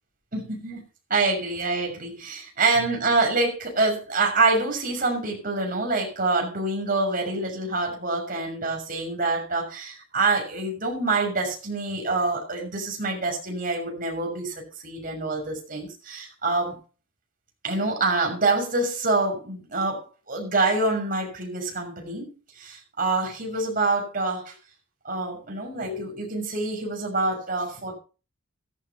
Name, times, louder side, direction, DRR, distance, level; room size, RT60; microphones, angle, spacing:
voice 1, 0.3-0.8 1.1-16.8 17.6-24.5 25.0-27.9, right 3 dB, 45° right, 6.4 m, -26 dB
17.5 x 13.5 x 3.0 m
head